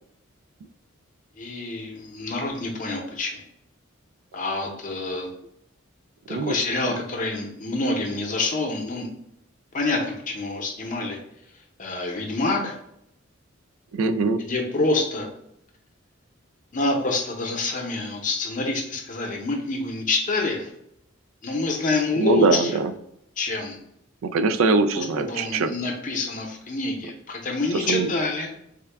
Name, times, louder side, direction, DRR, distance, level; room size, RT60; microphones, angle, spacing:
voice 1, 1.4-3.4 4.3-5.3 6.3-9.1 9.7-11.2 11.8-12.8 14.4-15.3 16.7-20.7 21.4-22.7 23.4-23.8 24.9-28.5, left 3 dB, 40° left, 1 dB, 0.7 m, -27 dB
voice 2, 6.3-6.6 13.9-14.4 22.1-22.9 24.2-25.7 27.7-28.1, right 4 dB, 80° right, 10 dB, 0.3 m, -22 dB
3.6 x 2.2 x 3.3 m, 0.76 s
head